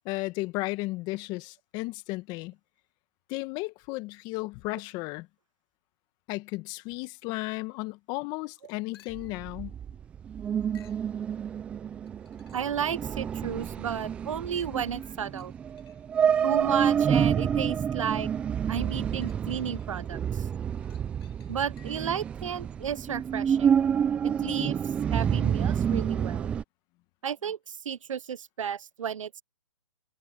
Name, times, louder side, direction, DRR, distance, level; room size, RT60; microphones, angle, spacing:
voice 1, 0.0-2.5 3.3-5.3 6.3-9.7, left 22 dB, 25° left, 1.4 m, -34 dB
sound 1, 8.9-9.5 10.7-11.1 12.1-12.8 13.4-13.5 14.5-17.5 18.9-20.1 20.5-22.2 26.0-26.1, left 12 dB, 50° left, 7.3 m, -61 dB
sound 2, 9.1-26.6, right 8 dB, 5° right, 0.3 m, -28 dB
voice 2, 12.5-15.5 16.4-18.3 18.7-20.4 21.5-23.7 24.2-24.8 25.1-26.5 27.2-29.4, right 8 dB, 75° right, 0.6 m, -33 dB
hypercardioid pair, 145°, 16 cm